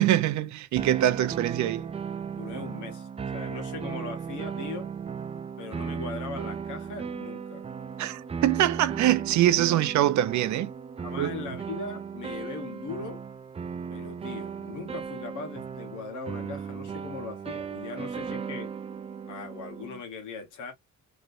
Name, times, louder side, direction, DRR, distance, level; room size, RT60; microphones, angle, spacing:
voice 1, 0.0-1.9 8.0-10.7 11.2-11.3, right 13 dB, 70° right, 0.6 m, -24 dB
sound 1, 0.8-20.0, right 6 dB, 20° right, 0.4 m, -36 dB
voice 2, 2.4-4.9 5.6-7.7 11.0-13.2 13.9-18.7 19.3-20.7, left 4 dB, 85° left, 1.5 m, -39 dB
3.1 x 3.0 x 2.5 m
cardioid pair, 90°, 30 cm